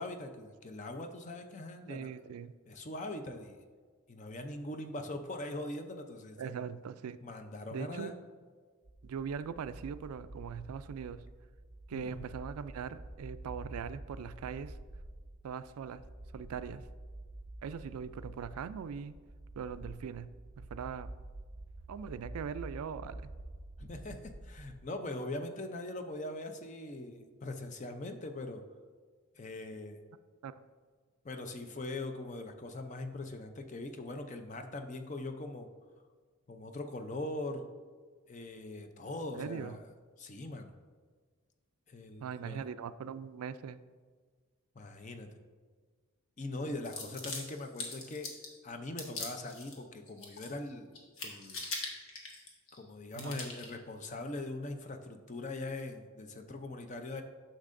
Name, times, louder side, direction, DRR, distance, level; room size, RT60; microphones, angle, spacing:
voice 1, 0.0-2.1 2.7-3.6 4.1-6.6 7.2-8.1 11.9-12.2 23.8-28.6 29.4-30.0 31.2-35.7 36.5-37.7 38.3-39.9 40.2-40.7 41.9-42.6 44.8-45.3 46.4-48.3 48.6-51.6 52.7-57.2, left 2 dB, 35° left, 6 dB, 0.5 m, -41 dB
voice 2, 1.9-2.5 6.4-7.2 7.7-8.1 9.0-11.3 11.9-14.7 15.4-16.0 16.3-16.8 17.6-19.2 19.6-20.3 20.6-21.1 21.9-23.3 30.4-30.5 39.3-39.8 42.2-43.8 53.1-53.4, right 7 dB, 90° right, 14 dB, 0.3 m, -41 dB
sound 1, 8.8-24.8, right 1 dB, 30° right, 0.5 m, -48 dB
sound 2, 46.8-48.6 49.0-49.8 50.1-50.7 51.0-52.8 53.1-53.7, left 3 dB, 70° left, 1.3 m, -42 dB
9.8 x 6.4 x 2.5 m, 1.5 s
head